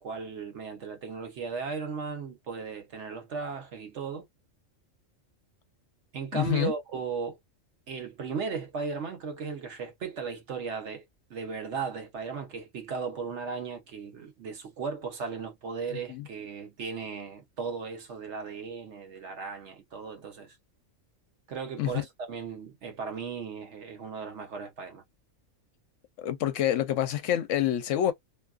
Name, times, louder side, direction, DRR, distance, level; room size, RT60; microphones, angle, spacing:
voice 1, 0.0-4.3 6.1-7.4 7.9-20.6 21.5-25.0, right 5 dB, 65° right, 1.0 m, -36 dB
voice 2, 6.3-6.7 16.1-16.3 21.8-21.9 26.2-28.1, left 11 dB, 75° left, 0.9 m, -27 dB
2.7 x 2.3 x 2.4 m
omnidirectional pair, 1.3 m